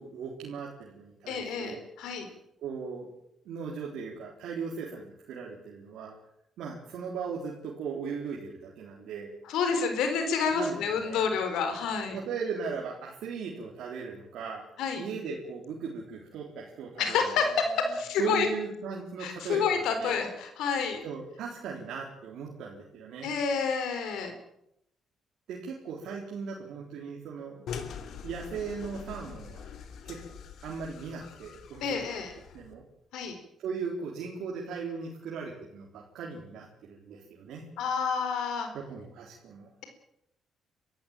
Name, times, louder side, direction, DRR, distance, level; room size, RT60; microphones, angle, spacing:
voice 1, 0.0-1.8 2.6-3.1 3.5-6.2 6.6-9.3 10.5-11.3 12.1-14.6 15.0-17.5 18.2-20.2 21.0-23.3 25.5-27.6 28.2-29.7 30.0-32.3 32.5-32.8 33.6-37.6 38.7-39.7, right 5 dB, 80° right, -2 dB, 3.9 m, -38 dB
voice 2, 1.3-2.3 9.4-12.2 14.8-15.0 17.0-18.5 19.2-21.0 23.2-24.3 31.8-32.3 33.1-33.4 37.8-38.7, left 5 dB, 85° left, 6 dB, 4.2 m, -29 dB
sound 1, 27.7-32.7, left 7 dB, 70° left, 2.7 m, -43 dB
23.5 x 14.5 x 9.0 m, 0.78 s
cardioid pair, 90°, 0 cm